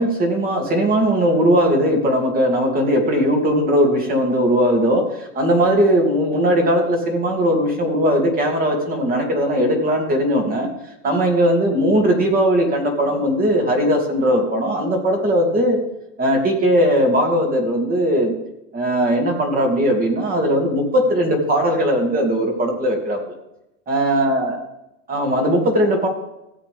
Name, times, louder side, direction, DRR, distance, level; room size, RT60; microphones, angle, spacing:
voice 1, 0.0-10.7 11.0-15.8 16.2-18.3 18.7-23.4 23.9-24.6 25.1-26.1, equal, 25° right, 1 dB, 2.5 m, -19 dB
16.0 x 7.7 x 3.5 m, 0.87 s
supercardioid pair, 130°, 37 cm